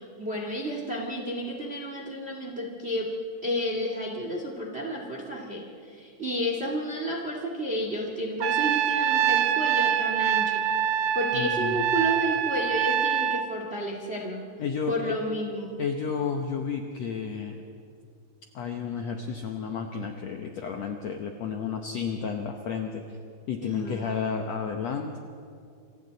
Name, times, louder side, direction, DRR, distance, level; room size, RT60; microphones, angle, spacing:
voice 1, 0.2-3.1 3.4-10.6 11.1-14.4 14.9-15.7 23.6-24.1, equal, 30° right, 0 dB, 1.2 m, -31 dB
Trumpet, 8.4-13.5, right 9 dB, 75° right, 2.3 m, -25 dB
voice 2, 11.3-11.9 14.6-15.1 15.8-17.5 18.5-23.2 23.5-25.2, left 6 dB, 90° left, 3 dB, 1.4 m, -32 dB
28.5 x 25.0 x 4.1 m, 2.4 s
omnidirectional pair, 4.6 m